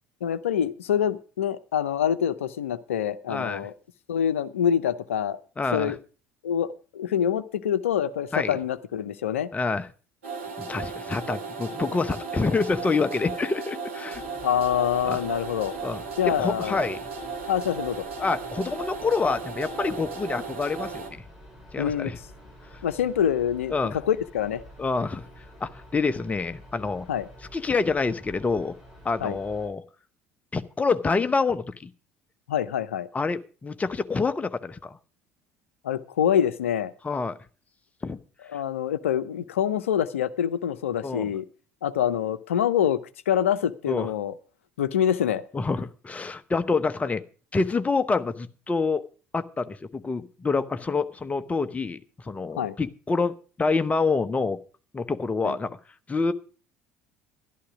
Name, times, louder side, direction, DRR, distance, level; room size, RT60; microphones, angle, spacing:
voice 1, 0.2-3.7 4.1-5.4 5.7-6.0 6.4-9.5 14.4-15.7 16.2-16.8 17.5-18.1 21.8-22.1 22.8-23.7 24.1-24.6 27.1-27.3 29.2-29.4 32.5-33.1 35.8-36.9 38.5-41.4 41.8-44.3 44.8-45.4 52.6-52.7 55.4-55.5, left 9 dB, 75° left, 14 dB, 0.6 m, -25 dB
voice 2, 3.3-3.7 5.6-5.9 8.3-8.6 9.5-9.9 10.6-14.2 15.0-15.2 15.8-17.0 18.2-21.2 21.7-22.2 22.7-22.8 23.7-24.0 24.8-25.2 25.6-27.1 27.5-28.7 29.0-29.8 30.5-31.9 33.1-35.0 37.0-37.4 38.0-38.2 38.5-38.6 41.0-41.3 43.9-44.1 45.5-47.2 47.5-49.0 49.3-54.6 54.9-55.8 56.1-56.3, left 4 dB, 20° left, 11 dB, 0.9 m, -27 dB
sound 1, 10.2-21.1, right 4 dB, 75° right, 2.7 m, -36 dB
sound 2, 14.1-29.7, equal, 5° right, 7.8 m, -48 dB
12.0 x 11.5 x 4.8 m, 0.38 s
figure-of-eight pair, 60°, 7 cm